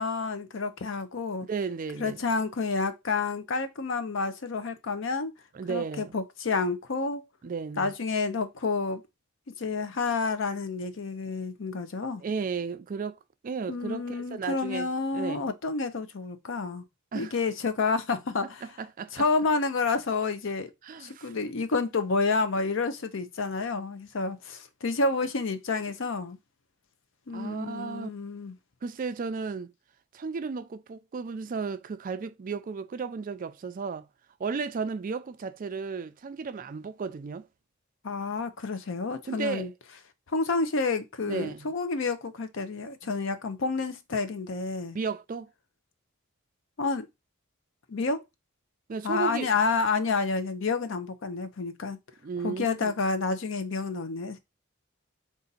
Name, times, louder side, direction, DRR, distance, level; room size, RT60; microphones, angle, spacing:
voice 1, 0.0-1.5 2.0-5.3 5.7-7.2 7.8-9.0 9.5-12.2 13.7-16.8 17.1-18.7 19.1-20.7 21.0-26.4 27.3-28.5 38.0-39.7 40.3-45.0 46.8-47.1 47.9-48.2 49.0-52.0 52.4-54.4, left 4 dB, 65° left, 0.6 m, -29 dB
voice 2, 1.5-2.2 5.5-6.1 7.4-7.9 12.2-13.2 13.4-15.5 17.1-17.3 18.8-19.1 20.8-21.3 27.3-28.1 28.8-29.7 30.1-34.1 34.4-37.5 39.3-39.7 41.3-41.7 44.9-45.5 48.9-49.5 52.2-52.9, right 5 dB, 40° right, 0.4 m, -34 dB
4.0 x 2.5 x 3.9 m
head